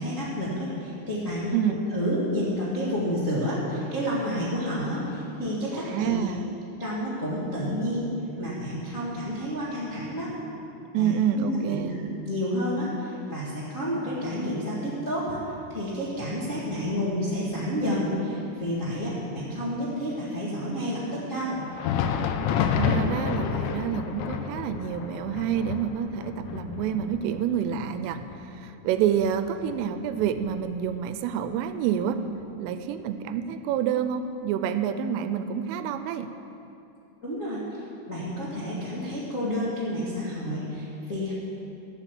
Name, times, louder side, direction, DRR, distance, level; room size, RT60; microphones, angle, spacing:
voice 1, 0.0-6.3 6.8-8.1 8.4-10.3 10.9-11.8 12.2-15.4 15.7-21.6 37.2-41.3, equal, 65° left, -8 dB, 0.7 m, -30 dB
voice 2, 1.5-1.8 5.7-6.4 10.9-12.0 22.5-32.2 32.6-36.3, right 8 dB, 85° right, 10 dB, 3.0 m, -28 dB
Thunder, 21.6-31.1 31.4-31.6 32.3-32.4 33.4-33.5, left 7 dB, 85° left, 2.6 m, -30 dB
11.5 x 8.1 x 8.2 m, 2.7 s
omnidirectional pair, 5.8 m